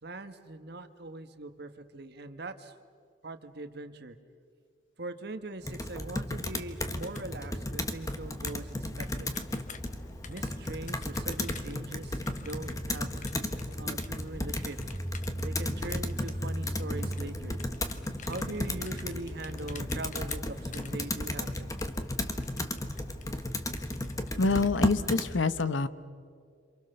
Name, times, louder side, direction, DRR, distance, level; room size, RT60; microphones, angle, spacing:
voice 1, 0.0-2.7 3.2-4.2 5.0-9.3 10.3-13.1 13.8-14.8 15.4-17.6 18.2-21.7, right 2 dB, 60° right, 9 dB, 1.5 m, -41 dB
Computer keyboard, 5.6-25.3, left 1 dB, 20° left, 1.2 m, -34 dB
sound 1, 6.9-24.8, left 3 dB, 40° left, 1.2 m, -49 dB
voice 2, 24.4-25.9, left 3 dB, 85° left, 14 dB, 0.9 m, -26 dB
27.5 x 27.0 x 6.9 m, 2.2 s
head